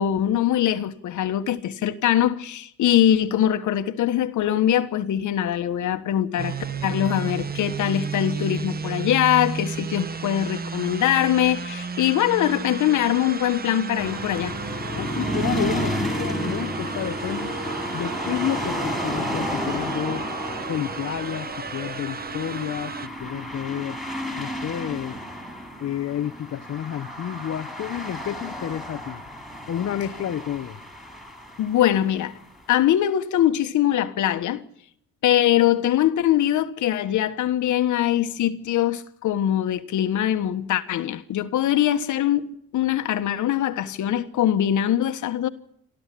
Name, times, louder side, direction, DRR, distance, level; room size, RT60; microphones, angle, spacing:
voice 1, 0.0-6.5 6.8-14.5 31.6-32.3 32.7-34.6 35.2-45.5, left 11 dB, 75° left, 1.5 m, -22 dB
sound 1, 6.4-23.1, right 5 dB, 30° right, 1.1 m, -33 dB
sound 2, 12.4-21.9, right 4 dB, 65° right, 5.6 m, -44 dB
sound 3, 14.0-32.4, equal, ahead, 5.5 m, -32 dB
voice 2, 14.9-17.6 17.9-20.3 20.7-24.0 24.4-25.2 25.8-29.2 29.7-30.8, left 10 dB, 55° left, 1.0 m, -30 dB
28.0 x 13.0 x 8.5 m
cardioid pair, 90°, 30 cm